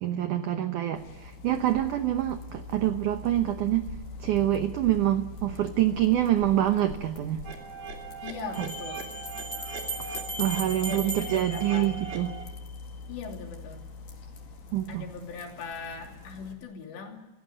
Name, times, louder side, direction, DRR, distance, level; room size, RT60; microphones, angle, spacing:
voice 1, 0.0-3.9 4.2-7.4 8.6-8.7 10.4-12.3 14.7-15.1, right 13 dB, 85° right, 8 dB, 1.7 m, -26 dB
sound 1, 1.0-16.5, left 4 dB, 50° left, 3.5 m, -43 dB
sound 2, 7.4-12.4, right 4 dB, 65° right, 4.7 m, -40 dB
voice 2, 8.2-9.1 10.9-11.9 13.1-13.8 14.9-17.3, left 5 dB, 75° left, 2 dB, 5.2 m, -40 dB
sound 3, 8.5-12.5, right 2 dB, 25° left, 2.5 m, -37 dB
28.0 x 16.0 x 7.8 m, 1.1 s
omnidirectional pair, 5.1 m